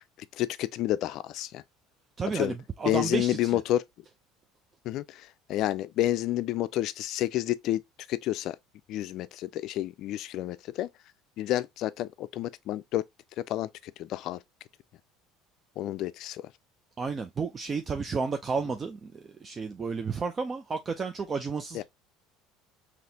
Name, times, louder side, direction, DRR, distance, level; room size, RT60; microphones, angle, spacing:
voice 1, 0.3-1.6 2.3-2.6 2.8-3.8 4.8-7.8 8.1-8.6 8.9-10.9 11.4-13.0 13.4-14.4 15.8-16.5 21.7-21.8, left 14 dB, 60° left, 0.4 m, -30 dB
voice 2, 2.2-3.6 17.0-21.8, right 5 dB, 30° right, 0.4 m, -32 dB
4.0 x 2.9 x 2.7 m
supercardioid pair, 100°, 0 cm